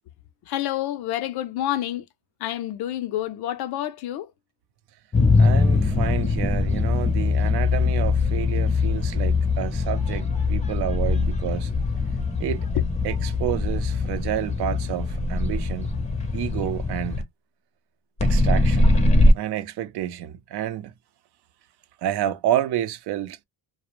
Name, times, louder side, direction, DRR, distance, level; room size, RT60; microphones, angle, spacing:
voice 1, 0.5-2.0 2.4-4.3, left 13 dB, 60° left, 0.5 m, -28 dB
sound 1, 5.1-17.2 18.2-19.3, left 3 dB, 15° left, 0.5 m, -22 dB
voice 2, 5.4-11.7 12.4-12.7 13.0-15.9 16.3-17.2 18.2-19.0 19.3-20.9 22.0-23.4, right 12 dB, 65° right, 0.6 m, -29 dB
2.4 x 2.0 x 2.9 m
cardioid pair, 125°, 43 cm